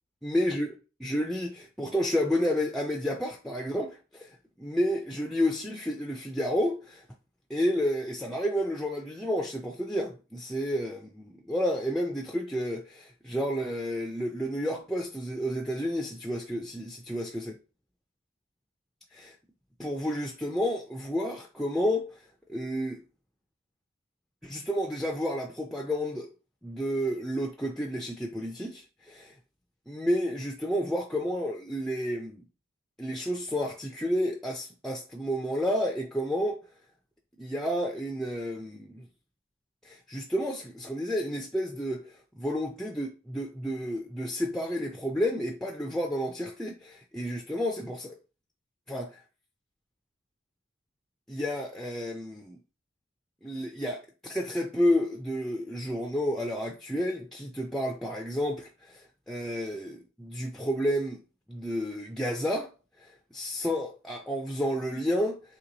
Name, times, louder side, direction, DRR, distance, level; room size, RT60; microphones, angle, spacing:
voice 1, 0.2-0.7 1.0-7.0 7.5-17.5 19.1-19.3 19.8-22.2 22.5-23.0 24.4-26.3 26.6-29.3 29.9-32.4 33.0-36.6 37.4-39.1 39.8-48.2 48.9-49.2 51.3-52.6 53.4-61.2 61.5-62.7 63.0-65.4, equal, ahead, 0.4 m, -31 dB
3.0 x 2.9 x 3.9 m
head